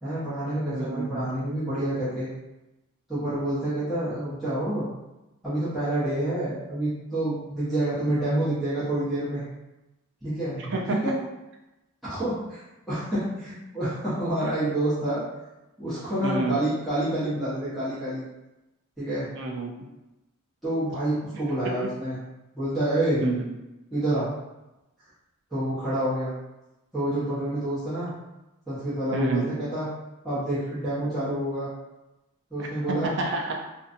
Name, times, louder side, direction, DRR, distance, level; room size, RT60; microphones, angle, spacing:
voice 1, 0.0-2.3 3.1-4.9 5.4-9.4 10.2-11.2 12.0-12.6 12.9-15.2 15.8-18.2 19.0-19.3 20.6-22.2 22.5-23.2 23.9-24.3 25.5-26.3 26.9-28.1 28.7-29.9 30.2-31.7 32.5-33.2, right 1 dB, ahead, -14 dB, 0.9 m, -28 dB
voice 2, 0.7-1.3 10.6-11.1 16.2-16.6 19.4-19.7 21.6-21.9 23.2-23.5 29.1-29.6 32.6-33.6, right 3 dB, 55° right, 1 dB, 0.5 m, -29 dB
2.6 x 2.2 x 2.5 m, 0.98 s
head